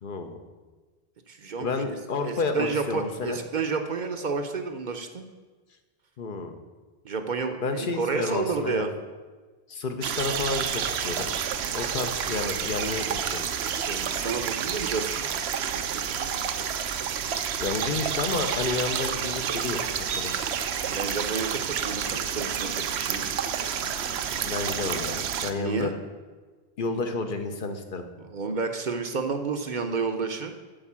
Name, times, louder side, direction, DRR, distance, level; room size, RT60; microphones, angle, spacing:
voice 1, 0.0-0.4 1.6-3.4 6.2-6.5 7.6-8.9 9.7-11.3 11.7-13.5 17.6-19.8 20.1-20.5 24.4-25.9 26.8-28.0, left 3 dB, 60° left, 6 dB, 0.9 m, -30 dB
voice 2, 1.3-2.0 2.2-5.3 7.0-8.9 13.6-15.3 15.6-16.7 20.8-23.2 25.6-25.9 28.2-30.5, right 4 dB, 55° right, 6 dB, 0.7 m, -31 dB
sound 1, 10.0-25.5, right 8 dB, 85° right, 0.9 m, -29 dB
8.7 x 4.5 x 7.3 m, 1.4 s
omnidirectional pair, 1.0 m